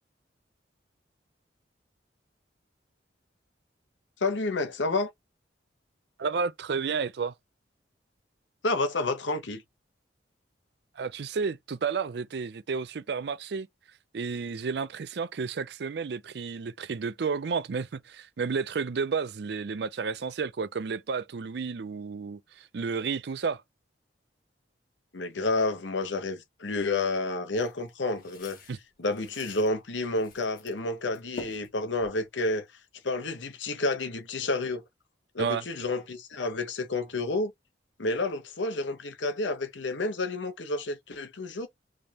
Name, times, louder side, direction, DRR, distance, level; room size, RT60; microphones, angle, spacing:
voice 1, 4.2-5.1 8.6-9.6 25.1-28.6 29.0-32.6 33.0-34.8 35.3-37.5 38.0-41.7, left 2 dB, 85° left, 1.0 m, -30 dB
voice 2, 6.2-7.3 11.0-13.7 14.1-23.6 28.7-28.8 35.4-35.6, right 5 dB, 60° right, 0.4 m, -31 dB
sound 1, 27.6-29.7 30.1-30.8 31.1-32.6, left 3 dB, 50° left, 1.6 m, -47 dB
5.1 x 3.4 x 2.9 m
head